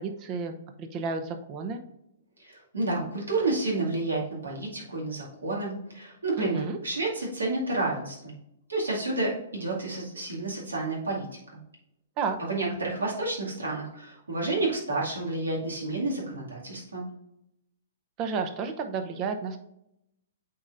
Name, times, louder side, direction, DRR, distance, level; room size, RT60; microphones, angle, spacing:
voice 1, 0.0-1.8 6.4-6.8 12.2-12.4 18.2-19.6, right 5 dB, 35° right, 7 dB, 0.8 m, -32 dB
voice 2, 2.4-8.3 8.7-11.3 11.5-11.6 12.5-17.0, right 2 dB, 85° right, -3 dB, 2.2 m, -30 dB
8.6 x 4.2 x 2.6 m, 0.81 s
hypercardioid pair, 120°, 0 cm